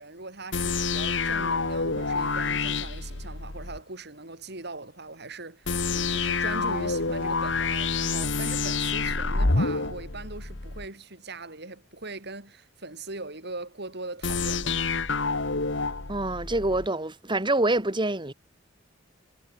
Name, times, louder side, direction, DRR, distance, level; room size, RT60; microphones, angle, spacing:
voice 1, 0.0-14.8, right 3 dB, 60° right, 7.9 m, -40 dB
sound 1, 0.5-3.8 5.7-10.9 14.2-16.9, left 4 dB, 70° left, 2.0 m, -28 dB
voice 2, 16.1-18.3, right 2 dB, 25° right, 4.4 m, -26 dB
head